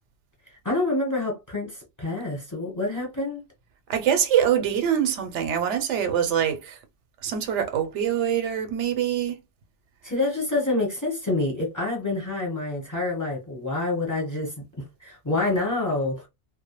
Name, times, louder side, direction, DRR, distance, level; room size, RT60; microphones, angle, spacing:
voice 1, 0.6-3.4 10.0-16.3, left 2 dB, 20° left, 0.9 m, -27 dB
voice 2, 3.9-6.8 7.2-9.4, right 9 dB, 85° right, 0.9 m, -24 dB
2.2 x 2.0 x 2.9 m
omnidirectional pair, 1.2 m